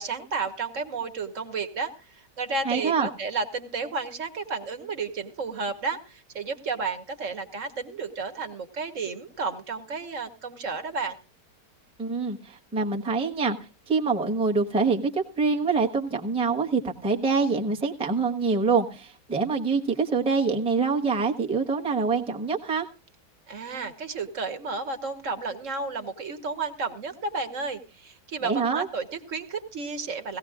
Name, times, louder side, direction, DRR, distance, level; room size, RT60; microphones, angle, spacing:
voice 1, 0.0-11.2 23.5-30.4, right 4 dB, 45° right, 8 dB, 1.4 m, -32 dB
voice 2, 2.6-3.1 12.0-13.6 13.9-22.9 28.4-28.9, right 4 dB, 5° right, 2 dB, 0.8 m, -25 dB
18.0 x 16.5 x 2.4 m, 0.33 s
omnidirectional pair, 2.0 m